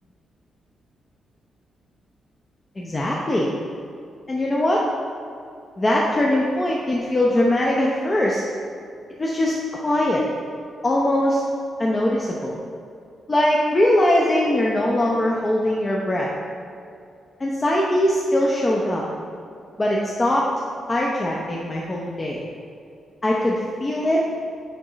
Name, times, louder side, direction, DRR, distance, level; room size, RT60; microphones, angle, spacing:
voice 1, 2.8-3.5 4.3-4.8 5.8-8.4 9.2-10.2 10.8-11.4 11.8-12.5 13.3-16.3 17.4-19.0 19.8-20.5 20.9-22.4 23.2-24.2, left 1 dB, 25° left, -3 dB, 0.8 m, -21 dB
8.8 x 3.5 x 5.1 m, 2.5 s
cardioid pair, 105°, 0 cm